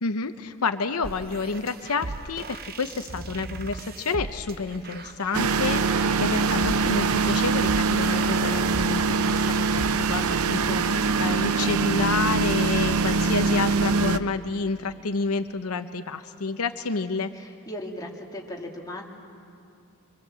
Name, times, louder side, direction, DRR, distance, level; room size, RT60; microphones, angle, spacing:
voice 1, 0.0-17.3, left 4 dB, 85° left, 9 dB, 0.8 m, -29 dB
sound 1, 1.0-10.4, right 3 dB, 45° right, 0.7 m, -38 dB
sound 2, 5.3-14.2, right 4 dB, 80° right, 0.7 m, -23 dB
voice 2, 17.3-19.0, left 1 dB, 15° left, -1 dB, 2.3 m, -37 dB
25.0 x 23.0 x 7.6 m, 2.5 s
head